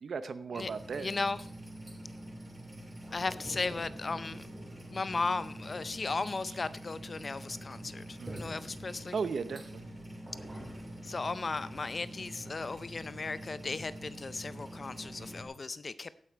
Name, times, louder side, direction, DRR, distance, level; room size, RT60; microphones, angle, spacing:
voice 1, 0.0-1.1 8.2-8.4 9.1-9.8, right 5 dB, 65° right, 12 dB, 0.8 m, -36 dB
voice 2, 0.5-1.5 3.1-4.4 4.9-9.2 11.0-16.1, left 3 dB, 35° left, 15 dB, 0.5 m, -36 dB
sound 1, 0.6-15.4, right 1 dB, 10° right, 2.9 m, -45 dB
15.5 x 8.8 x 4.5 m, 0.68 s
wide cardioid pair, 150°, 0 cm